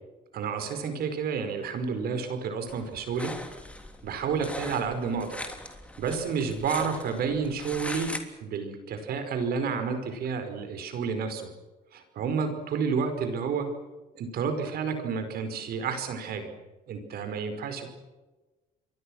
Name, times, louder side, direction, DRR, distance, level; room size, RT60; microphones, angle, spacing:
voice 1, 0.3-3.3 4.0-5.4 6.0-8.1 8.4-11.5 11.9-13.7 14.2-16.5 16.9-17.9, right 5 dB, 65° right, 7 dB, 5.2 m, -30 dB
sound 1, 2.7-8.2, left 1 dB, 5° left, 3.4 m, -40 dB
28.5 x 23.0 x 6.5 m, 1.2 s
cardioid pair, 110°, 17 cm